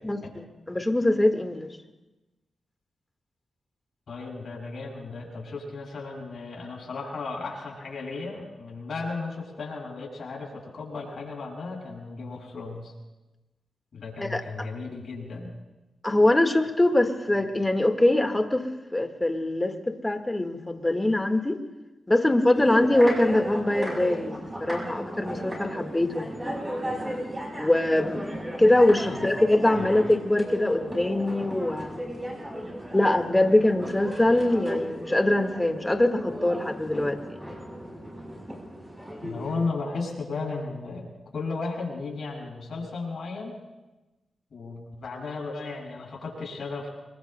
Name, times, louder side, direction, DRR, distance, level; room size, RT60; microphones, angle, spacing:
voice 1, 0.0-1.7 14.2-14.4 16.0-21.6 22.1-26.4 27.6-28.3 28.6-32.2 32.9-37.2, left 1 dB, 15° left, 6 dB, 1.7 m, -23 dB
voice 2, 4.1-12.9 13.9-15.5 29.0-29.3 29.7-29.9 39.2-43.6 44.5-46.9, left 3 dB, 70° left, -2 dB, 6.5 m, -35 dB
sound 1, 22.5-39.7, equal, 15° right, 6.0 m, -35 dB
26.0 x 23.0 x 2.2 m, 1.1 s
cardioid pair, 65°, 0 cm